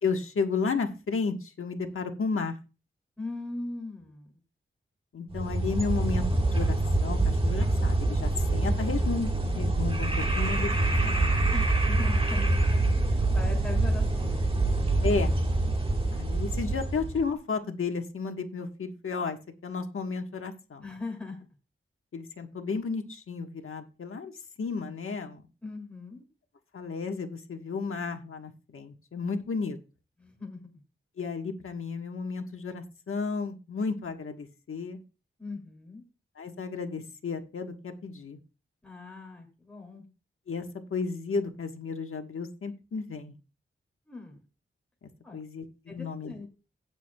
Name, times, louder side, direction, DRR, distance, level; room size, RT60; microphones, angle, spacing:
voice 1, 0.0-2.6 5.1-10.7 11.0-11.1 15.0-15.3 16.1-20.9 22.1-24.3 24.6-25.4 26.7-29.8 31.2-35.0 36.4-38.4 40.5-43.3 45.0-46.5, left 4 dB, 85° left, 5 dB, 1.4 m, -33 dB
voice 2, 3.2-4.3 11.5-12.6 13.1-14.5 20.8-21.4 25.6-26.2 30.2-30.8 35.4-36.0 38.8-40.0 44.1-44.4 45.2-45.4 45.9-46.5, left 3 dB, 5° left, 0 dB, 2.7 m, -40 dB
sound 1, 5.3-17.2, right 2 dB, 25° right, 1.6 m, -26 dB
17.0 x 7.2 x 2.3 m, 0.33 s
wide cardioid pair, 100°, 21 cm